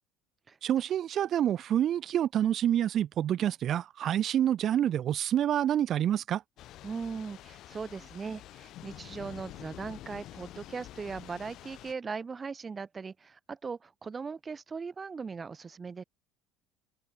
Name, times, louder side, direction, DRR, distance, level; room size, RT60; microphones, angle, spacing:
voice 1, 0.6-6.4, right 10 dB, 45° right, 2.1 m, -27 dB
Thunder / Rain, 6.6-11.9, left 14 dB, 50° left, 4.4 m, -48 dB
voice 2, 6.8-16.0, right 5 dB, 25° right, 3.2 m, -39 dB
figure-of-eight pair, 60°, 0 cm